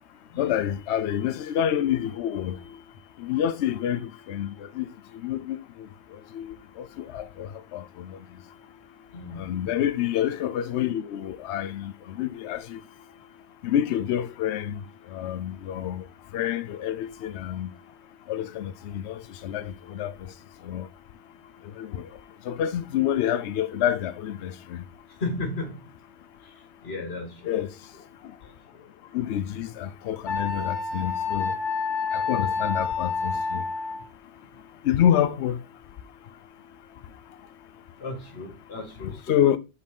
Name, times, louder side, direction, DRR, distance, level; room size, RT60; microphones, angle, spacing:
voice 1, 0.4-2.6 3.2-4.9 5.2-5.9 6.3-8.2 9.4-12.8 13.6-14.8 15.1-16.0 16.3-17.7 18.3-20.3 20.6-20.9 21.8-22.1 22.5-24.8 27.4-27.7 29.1-31.5 32.1-33.6 34.8-35.6 39.0-39.6, left 10 dB, 80° left, 0.9 m, -28 dB
voice 2, 9.1-9.4 25.2-25.8 26.8-27.5 28.4-28.5 38.0-39.4, left 2 dB, 65° left, 1.7 m, -34 dB
Wind instrument woodwind instrument, 30.3-34.1, left 4 dB, 50° left, 1.2 m, -28 dB
5.2 x 4.2 x 5.2 m
omnidirectional pair, 1.1 m